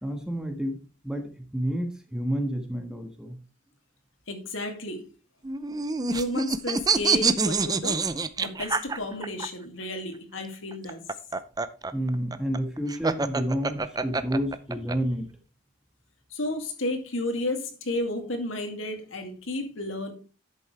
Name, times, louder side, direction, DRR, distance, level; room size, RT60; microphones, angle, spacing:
voice 1, 0.0-3.4 11.9-15.3, equal, 5° right, 4 dB, 1.4 m, -30 dB
voice 2, 4.3-5.0 6.1-8.0 8.4-11.0 16.3-20.1, left 1 dB, 80° left, 4 dB, 2.4 m, -32 dB
sound 1, 5.4-9.5 10.7-15.0, right 4 dB, 20° right, 0.5 m, -26 dB
11.0 x 8.0 x 3.3 m, 0.33 s
head